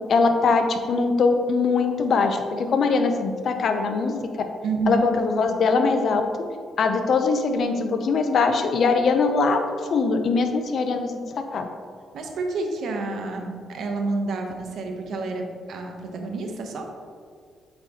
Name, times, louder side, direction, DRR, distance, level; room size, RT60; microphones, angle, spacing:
voice 1, 0.1-4.2 4.9-6.2 6.8-9.6 9.9-11.7, left 4 dB, 60° left, 6 dB, 0.6 m, -22 dB
voice 2, 4.6-5.1 12.1-15.4 15.7-16.8, right 3 dB, 65° right, 3 dB, 0.9 m, -29 dB
8.6 x 4.2 x 2.9 m, 2.1 s
cardioid pair, 90°, 0 cm